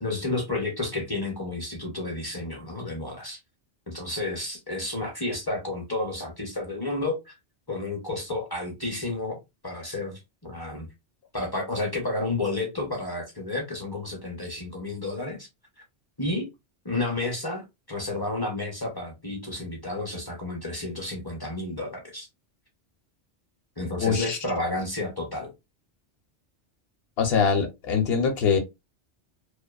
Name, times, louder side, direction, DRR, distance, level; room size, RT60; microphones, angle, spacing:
voice 1, 0.0-3.4 3.9-7.3 7.7-10.9 11.3-15.5 16.2-16.5 16.8-22.3 23.8-25.5, left 2 dB, 30° left, 0.5 m, -31 dB
voice 2, 24.0-24.4 27.2-28.6, left 6 dB, 65° left, 0.8 m, -23 dB
2.5 x 2.2 x 2.3 m
omnidirectional pair, 1.2 m